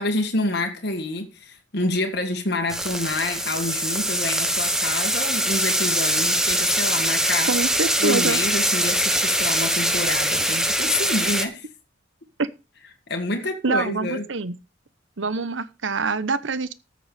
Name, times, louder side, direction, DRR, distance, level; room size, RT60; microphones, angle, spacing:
voice 1, 0.0-7.5 8.0-11.7 13.1-14.3, left 2 dB, 55° left, 1.8 m, -27 dB
sound 1, 2.7-11.5, right 1 dB, 5° right, 1.0 m, -23 dB
voice 2, 7.5-8.4 12.4-12.5 13.6-14.5 15.2-16.7, right 4 dB, 75° right, 0.9 m, -25 dB
13.5 x 7.0 x 4.9 m
head